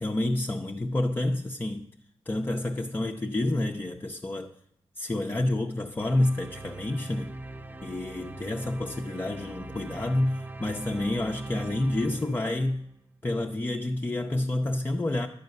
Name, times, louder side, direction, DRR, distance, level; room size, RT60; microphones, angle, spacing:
voice 1, 0.0-1.9 2.3-4.5 5.0-7.3 7.8-12.8 13.2-15.3, left 1 dB, 20° left, 0.6 m, -29 dB
sound 1, 6.0-13.0, right 2 dB, 20° right, 0.6 m, -42 dB
11.5 x 8.1 x 6.5 m
wide cardioid pair, 140°, 10 cm